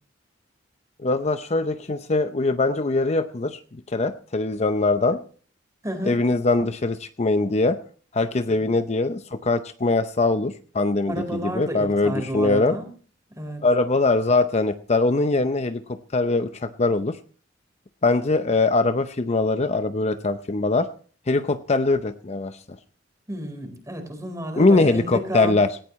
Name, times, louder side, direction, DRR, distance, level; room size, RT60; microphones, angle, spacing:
voice 1, 1.0-3.6 3.9-5.2 6.1-7.8 8.1-11.1 11.4-12.8 13.6-15.8 16.1-17.2 18.0-20.9 21.3-22.6 24.6-25.7, left 3 dB, 35° left, 10 dB, 0.6 m, -22 dB
voice 2, 5.8-6.2 11.1-12.9 13.4-13.6 23.3-25.5, right 1 dB, 15° right, 5 dB, 4.3 m, -31 dB
18.0 x 16.5 x 3.1 m, 0.42 s
head